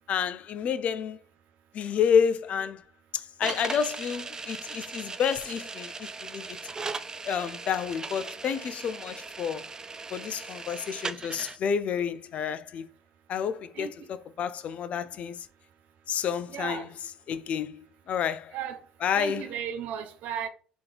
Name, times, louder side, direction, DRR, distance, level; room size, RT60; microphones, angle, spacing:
voice 1, 0.1-1.2 1.7-2.8 3.1-6.6 7.2-9.7 10.1-12.9 13.3-13.9 14.4-15.5 16.1-16.8 17.3-18.5 19.0-19.4, left 7 dB, 55° left, 0.4 m, -29 dB
sound 1, 3.4-11.6, right 4 dB, 25° right, 0.4 m, -38 dB
voice 2, 16.5-16.9 18.5-18.8 19.1-20.5, right 8 dB, 65° right, 0.7 m, -35 dB
3.5 x 2.9 x 3.8 m
supercardioid pair, 75°, 3 cm